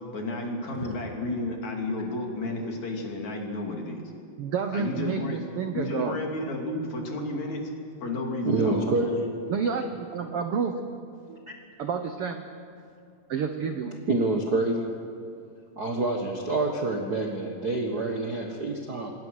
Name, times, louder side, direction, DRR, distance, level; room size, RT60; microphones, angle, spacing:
voice 1, 0.1-4.0 4.7-5.4 5.7-7.6 8.0-8.8, left 2 dB, 60° left, 1 dB, 4.0 m, -32 dB
voice 2, 4.4-6.2 9.5-10.8 11.8-12.4 13.3-14.0, right 6 dB, 70° right, 6 dB, 1.4 m, -29 dB
voice 3, 8.5-9.3 11.3-11.4 14.1-14.9 15.8-19.1, right 2 dB, 45° right, 1 dB, 1.3 m, -27 dB
27.0 x 20.0 x 6.4 m, 2.4 s
omnidirectional pair, 3.8 m